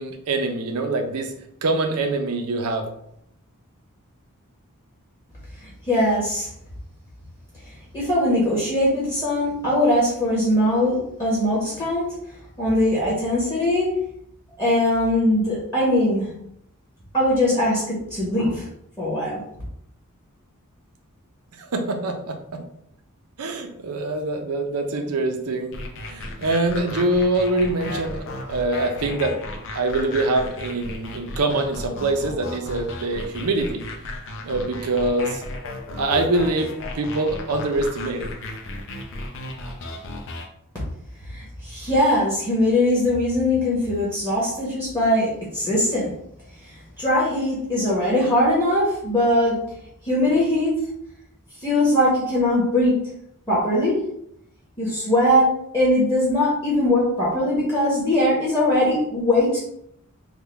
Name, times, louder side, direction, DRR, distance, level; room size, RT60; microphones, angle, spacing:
voice 1, 0.0-1.3 1.6-2.9 21.6-22.6 23.4-25.8 26.1-29.4 29.7-33.8 34.4-35.4 36.0-38.3, right 2 dB, 85° right, 5 dB, 0.6 m, -24 dB
voice 2, 5.6-6.5 7.9-12.1 12.6-13.9 14.6-16.3 17.1-18.7 19.0-19.4 41.3-46.1 47.0-49.6 50.0-50.8 51.6-53.0 53.5-54.0 54.8-59.6, left 1 dB, 15° left, -8 dB, 1.0 m, -21 dB
sound 1, 25.7-40.5, left 2 dB, 60° left, 0.5 m, -35 dB
3.6 x 2.2 x 3.3 m, 0.74 s
head